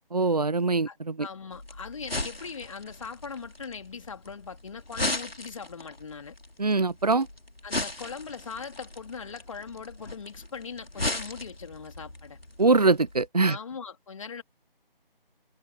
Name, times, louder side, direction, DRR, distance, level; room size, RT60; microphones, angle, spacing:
voice 1, 0.1-1.3 6.6-7.3 12.6-13.6, right 3 dB, 45° right, 0.4 m, -23 dB
voice 2, 0.9-6.3 7.6-12.4 13.4-14.4, left 5 dB, 35° left, 3.4 m, -40 dB
sound 1, 1.5-13.3, left 2 dB, 80° left, 3.5 m, -37 dB
figure-of-eight pair, 160°, 29 cm